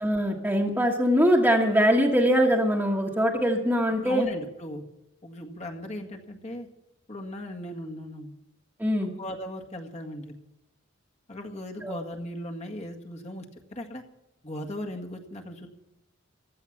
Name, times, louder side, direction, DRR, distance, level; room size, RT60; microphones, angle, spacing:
voice 1, 0.0-4.3 8.8-9.1 11.8-11.9, equal, 10° right, -4 dB, 1.5 m, -22 dB
voice 2, 4.0-4.8 5.2-6.7 7.1-8.3 9.0-10.3 11.3-13.5 13.7-14.0 14.4-15.7, left 1 dB, 35° left, 1 dB, 1.8 m, -37 dB
15.5 x 12.0 x 5.9 m, 0.92 s
head